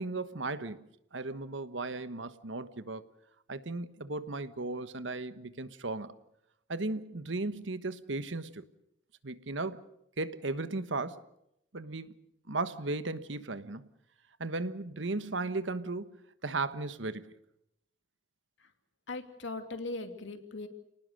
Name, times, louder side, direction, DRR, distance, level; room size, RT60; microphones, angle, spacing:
voice 1, 0.0-3.0 3.5-6.2 6.7-8.6 9.2-9.8 10.2-11.2 11.7-12.1 12.5-13.9 14.4-17.3, right 3 dB, 85° right, 1.3 m, -36 dB
voice 2, 19.1-20.7, left 2 dB, 85° left, 2.6 m, -39 dB
29.0 x 19.0 x 6.6 m
head